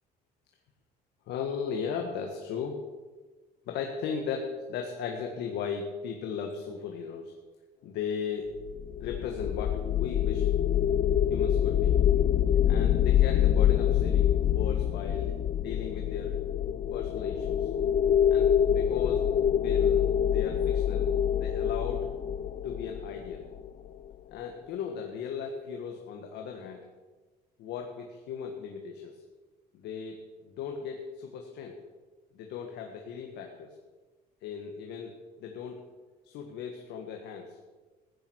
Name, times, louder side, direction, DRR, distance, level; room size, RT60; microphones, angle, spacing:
voice 1, 1.3-2.8 3.7-7.4 7.8-8.6 9.0-10.5 11.3-12.0 12.7-16.4 16.9-17.7 18.3-19.2 19.5-22.1 22.6-23.5 24.3-26.8 27.6-29.2 29.7-30.2 30.4-31.8 32.3-33.8 34.4-35.1 35.4-35.8 36.2-37.6, left 6 dB, 80° left, 3 dB, 1.7 m, -37 dB
sound 1, 8.7-23.9, left 10 dB, 50° left, 0.7 m, -26 dB
15.0 x 9.7 x 6.3 m, 1.3 s
cardioid pair, 110°, 17 cm